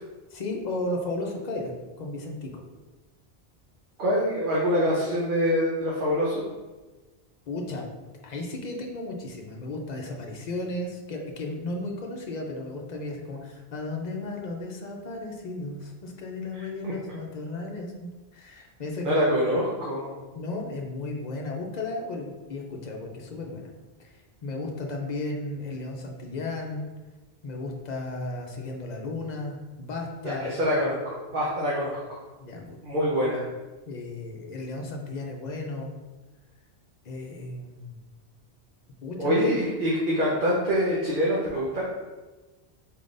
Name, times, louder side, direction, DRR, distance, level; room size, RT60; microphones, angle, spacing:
voice 1, 0.3-2.6 7.5-7.9 8.2-19.2 20.3-23.7 24.1-26.9 27.4-30.6 32.4-32.8 33.9-35.9 37.0-38.0 39.0-39.4, left 2 dB, 50° left, 2 dB, 0.7 m, -34 dB
voice 2, 4.0-6.4 16.5-16.9 19.0-20.1 30.2-32.2 32.8-33.4 39.2-41.9, equal, 55° right, -6 dB, 1.0 m, -25 dB
4.5 x 3.7 x 2.5 m, 1.2 s
omnidirectional pair, 1.1 m